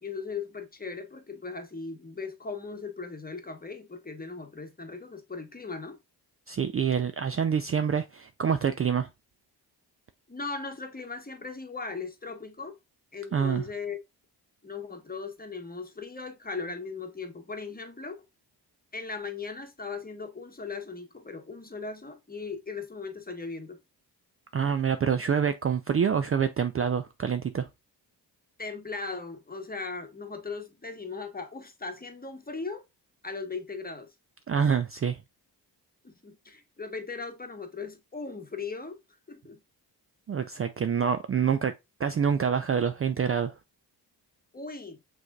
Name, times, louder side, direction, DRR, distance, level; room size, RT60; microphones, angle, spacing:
voice 1, 0.0-6.0 10.3-12.8 13.1-14.0 14.6-18.2 18.9-23.8 28.6-32.8 33.2-34.1 36.0-39.0 39.3-39.6 44.5-45.0, left 4 dB, 20° left, 1.1 m, -38 dB
voice 2, 6.5-9.1 13.3-13.6 24.5-27.7 34.5-35.2 40.3-41.7 42.0-43.5, right 7 dB, 35° right, 0.4 m, -26 dB
6.0 x 3.3 x 2.3 m
supercardioid pair, 55°, 43 cm